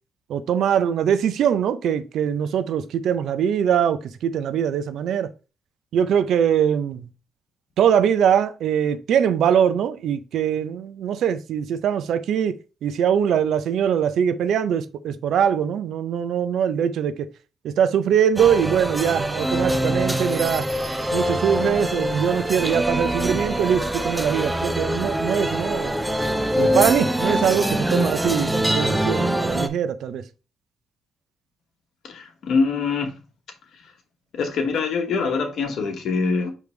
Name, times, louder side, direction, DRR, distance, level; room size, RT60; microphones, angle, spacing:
voice 1, 0.3-5.3 5.9-7.1 7.8-12.5 12.8-17.3 17.6-20.7 21.1-25.9 26.6-30.3, right 8 dB, 75° right, 0.4 m, -22 dB
sound 1, 18.4-29.7, equal, 10° right, 0.5 m, -24 dB
voice 2, 32.0-33.1 33.8-33.9 34.3-36.5, left 4 dB, 70° left, 1.1 m, -24 dB
5.1 x 3.2 x 3.2 m
cardioid pair, 85°, 0 cm